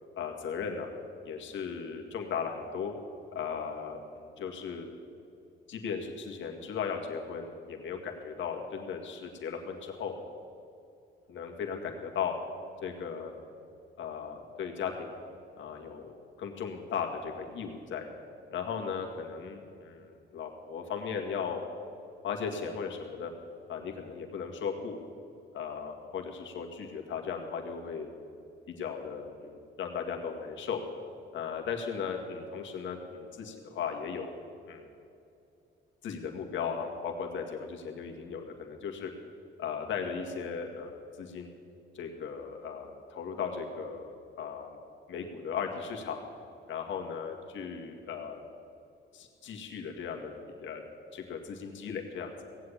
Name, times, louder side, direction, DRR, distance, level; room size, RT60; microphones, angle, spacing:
voice 1, 0.2-0.9 1.2-2.9 3.3-4.9 5.7-10.2 11.3-12.3 12.8-13.3 14.0-15.1 15.6-16.1 16.4-18.1 18.5-21.6 22.2-23.3 23.7-25.0 25.5-30.8 31.3-34.3 34.7-34.9 36.0-39.1 39.6-41.5 41.9-44.8 45.1-46.2 46.7-48.4 49.1-50.3 50.6-50.8 51.1-52.3, left 6 dB, 70° left, 3 dB, 2.1 m, -37 dB
17.5 x 7.9 x 8.7 m, 2.6 s
cardioid pair, 90°, 20 cm